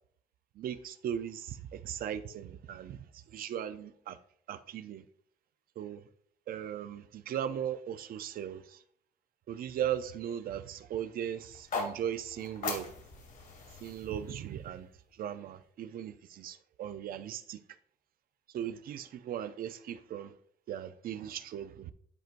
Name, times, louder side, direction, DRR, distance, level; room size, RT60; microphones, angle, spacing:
voice 1, 0.6-4.2 4.5-5.0 5.8-6.0 6.5-8.8 9.5-12.9 13.8-14.9 15.2-17.6 18.5-20.3 20.7-21.9, right 10 dB, 75° right, 0.5 m, -38 dB
sound 1, 11.5-15.6, left 4 dB, 70° left, 2.4 m, -41 dB
10.5 x 4.5 x 2.5 m
cardioid pair, 130°, 15 cm